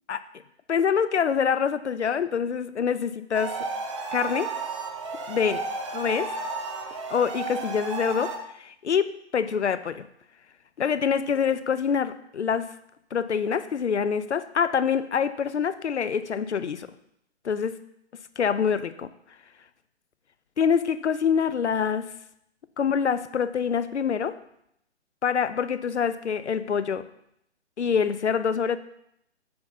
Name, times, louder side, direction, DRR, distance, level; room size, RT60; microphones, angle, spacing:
voice 1, 0.7-3.6 4.1-4.5 5.3-5.6 5.9-6.3 7.1-8.3 8.6-10.1 10.8-12.7 13.1-16.9 17.4-17.7 18.4-19.1 20.6-22.0 22.8-24.4 25.2-27.0 27.8-28.8, left 7 dB, 75° left, 13 dB, 0.6 m, -25 dB
sound 1, 3.3-8.4, right 4 dB, 25° right, 0.6 m, -33 dB
7.7 x 4.0 x 5.7 m, 0.74 s
figure-of-eight pair, 135°, 35 cm